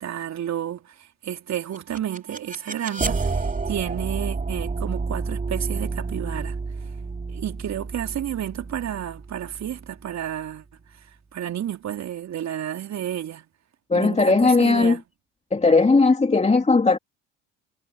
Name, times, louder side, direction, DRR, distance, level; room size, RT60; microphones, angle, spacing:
voice 1, 0.0-6.6 7.3-10.7 11.3-13.5 13.9-15.0, right 10 dB, 45° right, 3.7 m, -31 dB
sound 1, 1.5-10.5, right 4 dB, 20° right, 3.7 m, -30 dB
voice 2, 13.9-15.0 15.5-17.0, left 3 dB, 15° left, 2.7 m, -18 dB
figure-of-eight pair, 60°, 39 cm